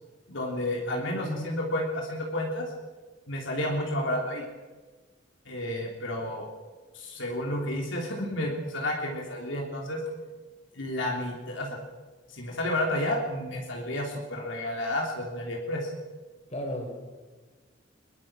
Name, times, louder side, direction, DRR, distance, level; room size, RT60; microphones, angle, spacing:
voice 1, 0.3-2.7 3.3-4.4 5.4-6.5 6.9-10.0 10.7-11.8 12.3-15.9, left 1 dB, 75° left, -1 dB, 3.3 m, -31 dB
voice 2, 0.9-1.6 16.5-16.9, left 1 dB, 35° left, 2 dB, 4.8 m, -35 dB
21.5 x 20.5 x 6.2 m, 1.3 s
head